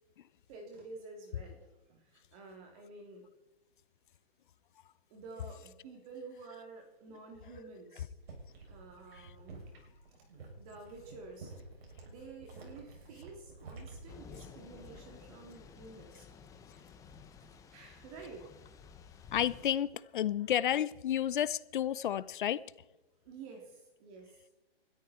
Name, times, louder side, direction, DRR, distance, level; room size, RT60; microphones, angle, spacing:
voice 1, 0.5-3.3 5.1-8.1 8.7-9.7 10.1-10.2 10.6-11.5 12.0-16.3 16.8-16.9 17.4-18.5 23.2-24.5, right 3 dB, 35° right, 3.1 m, -50 dB
sound 1, 8.1-15.1 15.4-15.8, right 3 dB, 75° right, 7.1 m, -51 dB
Thunder / Rain, 14.1-19.7, left 6 dB, 10° left, 1.0 m, -53 dB
voice 2, 19.3-22.6, left 11 dB, 55° left, 0.7 m, -31 dB
21.0 x 13.0 x 4.4 m
hypercardioid pair, 150°, 31 cm